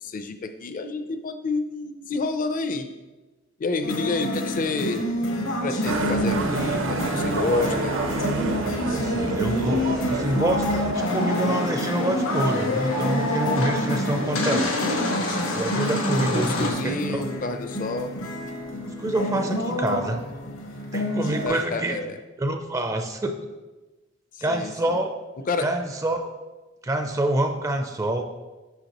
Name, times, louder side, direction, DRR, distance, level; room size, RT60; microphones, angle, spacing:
voice 1, 0.0-2.9 3.6-5.0 5.6-7.9 16.2-18.1 21.4-22.2 24.4-25.0 25.5-25.7, left 3 dB, 45° left, 8 dB, 0.5 m, -29 dB
sound 1, 3.8-21.5, left 1 dB, 70° left, 1.0 m, -28 dB
Motorcycle, 5.8-10.9, right 3 dB, 70° right, 0.7 m, -28 dB
voice 2, 8.9-14.8 15.5-17.3 19.0-20.2 20.9-22.0 22.4-23.5 24.4-25.1 25.6-26.3 26.8-28.2, right 1 dB, 15° right, 5 dB, 0.4 m, -26 dB
sound 2, 10.9-16.7, left 2 dB, 90° left, 1.4 m, -29 dB
8.0 x 5.9 x 2.9 m, 1.2 s
head